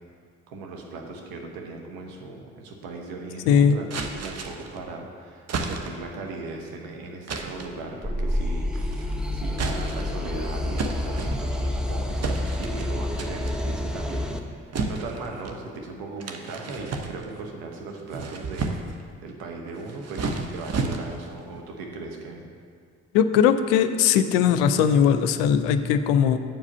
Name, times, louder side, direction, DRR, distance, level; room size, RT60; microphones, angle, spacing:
voice 1, 0.5-8.7 9.3-14.6 14.9-18.7 19.2-22.5, right 3 dB, 70° right, 1 dB, 1.2 m, -38 dB
voice 2, 3.5-3.8 23.1-26.4, left 8 dB, 80° left, 10 dB, 0.5 m, -19 dB
sound 1, 3.9-4.8 5.5-6.1 7.3-7.8 8.7-9.1 9.5-10.2 10.8-11.7 12.2-12.9 13.2-13.6 14.7-15.6 16.2-17.5 17.9-19.0 19.8-21.3, right 4 dB, 45° right, 0.9 m, -32 dB
sound 2, 8.0-14.4, left 1 dB, ahead, 0.8 m, -28 dB
7.4 x 4.9 x 6.6 m, 2.1 s
hypercardioid pair, 45°, 37 cm